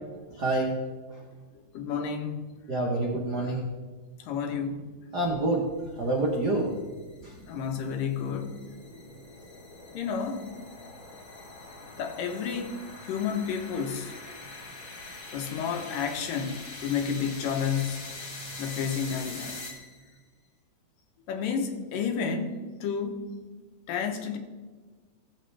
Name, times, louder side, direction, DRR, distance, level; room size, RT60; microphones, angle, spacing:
voice 1, 0.3-0.8 2.7-3.6 5.1-5.7 5.9-6.7 7.2-7.3, right 2 dB, 75° right, -2 dB, 0.9 m, -27 dB
voice 2, 1.7-2.4 4.2-4.9 7.5-8.6 9.9-10.5 11.8-14.1 15.3-18.1 18.6-19.5 21.3-23.2 23.9-24.4, left 6 dB, 80° left, 5 dB, 2.7 m, -31 dB
sound 1, 5.4-20.2, left 2 dB, 45° left, 2.2 m, -44 dB
17.0 x 7.4 x 3.3 m, 1.4 s
omnidirectional pair, 3.9 m